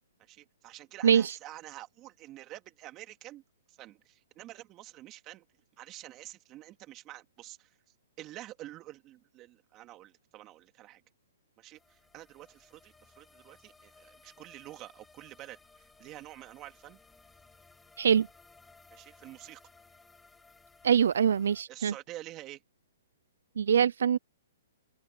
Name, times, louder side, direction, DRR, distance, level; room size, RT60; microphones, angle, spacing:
voice 1, 0.2-3.4 3.7-5.4 5.8-7.8 8.2-11.0 11.6-17.0 18.9-19.6 21.7-22.6, right 15 dB, 25° right, 2.8 m, -48 dB
voice 2, 1.0-1.3 18.0-18.3 20.8-21.9 23.6-24.2, right 8 dB, 75° right, 0.5 m, -24 dB
sound 1, 11.7-21.6, left 3 dB, 5° left, 5.9 m, -60 dB
open air
hypercardioid pair, 155°, 0 cm